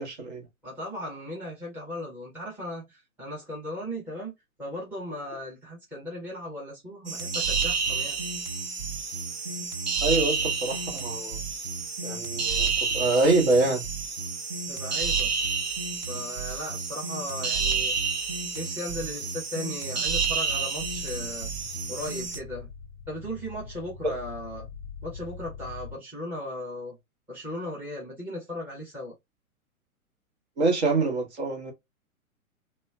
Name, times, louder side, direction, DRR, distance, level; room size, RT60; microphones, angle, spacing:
voice 1, 0.0-0.5 10.0-11.4 12.0-13.8 24.0-24.1 30.6-31.7, right 3 dB, 50° right, 1.1 m, -25 dB
voice 2, 0.6-4.3 4.6-8.2 14.7-15.3 16.1-18.0 18.5-21.5 21.9-22.7 23.1-24.7 25.0-27.0 27.3-29.1, left 1 dB, 5° right, 0.7 m, -37 dB
sound 1, 7.1-22.4, right 5 dB, 35° right, 0.4 m, -30 dB
sound 2, 20.8-25.9, left 5 dB, 35° left, 0.5 m, -43 dB
3.0 x 2.1 x 2.2 m
figure-of-eight pair, 120°, 43 cm